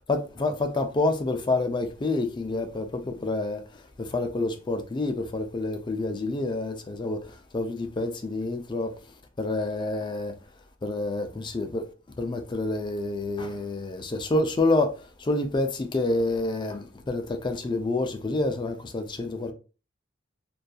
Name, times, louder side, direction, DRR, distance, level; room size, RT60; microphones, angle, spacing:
voice 1, 0.1-9.0 9.4-10.4 10.8-11.9 12.2-19.5, left 2 dB, 25° left, 0.4 m, -28 dB
2.6 x 2.3 x 2.3 m
head